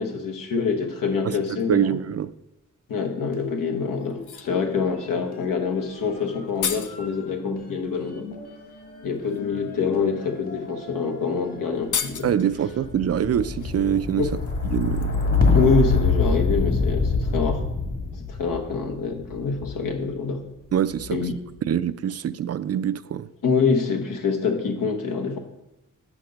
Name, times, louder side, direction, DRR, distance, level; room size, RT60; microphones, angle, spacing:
voice 1, 0.0-1.9 2.9-8.3 9.0-12.3 14.2-14.3 15.5-17.6 18.3-20.5 21.1-21.3 23.4-25.4, left 5 dB, 85° left, 1.1 m, -25 dB
voice 2, 1.7-2.3 12.2-14.3 14.6-15.1 20.7-21.3 21.6-23.3, right 9 dB, 50° right, 0.4 m, -24 dB
sound 1, 3.3-4.6 4.9-19.9 20.7-21.3, left 3 dB, 50° left, 1.8 m, -27 dB
sound 2, 4.1-4.6 6.1-6.2 6.3-7.0 8.4-8.5 9.2-9.4 10.3-10.4 10.7-10.9 11.1-11.2 11.8-12.5 13.6-15.6 15.9-16.1, left 7 dB, 70° left, 0.6 m, -33 dB
5.9 x 5.8 x 5.2 m
cardioid pair, 60°, 32 cm